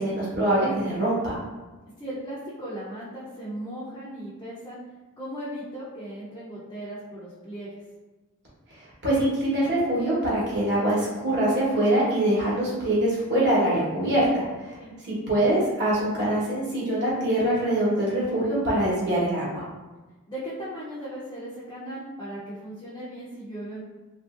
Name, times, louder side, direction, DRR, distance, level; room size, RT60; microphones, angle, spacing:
voice 1, 0.0-1.3 9.0-14.8 15.1-19.6, right 1 dB, 50° right, -7 dB, 1.1 m, -24 dB
voice 2, 2.0-4.8 5.2-7.7 14.8-14.9 20.3-23.8, right 1 dB, 20° left, -9 dB, 0.5 m, -37 dB
3.0 x 2.6 x 2.4 m, 1.2 s
head